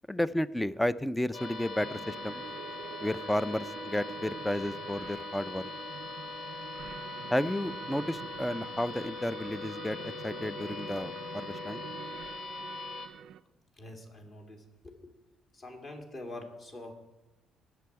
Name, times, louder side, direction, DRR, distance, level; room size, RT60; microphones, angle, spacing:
voice 1, 0.1-2.4 3.0-5.6 7.3-11.9, left 1 dB, 5° left, 17 dB, 0.4 m, -32 dB
sound 1, 1.3-13.1, left 4 dB, 65° left, 2.4 m, -41 dB
sound 2, 1.8-13.4, right 9 dB, 65° right, 0.4 m, -46 dB
voice 2, 13.8-15.1 15.5-16.9, left 2 dB, 40° left, 4 dB, 2.4 m, -45 dB
19.5 x 6.9 x 4.7 m, 1.0 s
cardioid pair, 125°, 0 cm